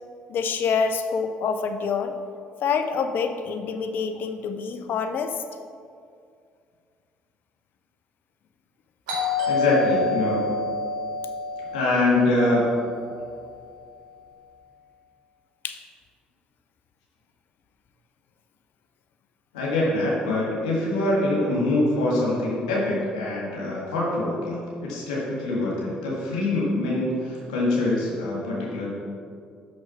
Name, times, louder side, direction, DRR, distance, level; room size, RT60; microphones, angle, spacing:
voice 1, 0.3-2.1 2.6-5.4 15.6-15.8, left 5 dB, 60° left, 7 dB, 0.7 m, -26 dB
Doorbell, 9.1-13.7, left 3 dB, 80° right, 2.0 m, -28 dB
voice 2, 9.5-10.6 11.7-12.7 19.5-28.9, left 2 dB, 85° left, -5 dB, 1.8 m, -24 dB
6.4 x 6.1 x 5.6 m, 2.3 s
hypercardioid pair, 55°, 4 cm